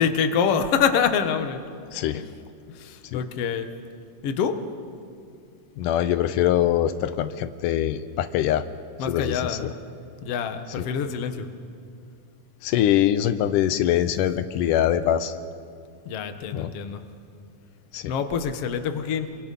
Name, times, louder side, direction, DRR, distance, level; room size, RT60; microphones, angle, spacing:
voice 1, 0.0-1.6 2.1-2.2 2.8-3.7 4.2-4.6 9.0-9.7 10.2-11.5 16.1-17.0 18.1-19.3, left 7 dB, 60° left, 8 dB, 1.9 m, -25 dB
voice 2, 1.9-2.2 3.1-3.2 5.8-8.7 9.1-9.7 10.8-10.9 12.6-15.3 16.5-16.7 17.9-18.1, left 11 dB, 85° left, 12 dB, 2.2 m, -23 dB
30.0 x 23.0 x 5.4 m, 2.3 s
omnidirectional pair, 3.7 m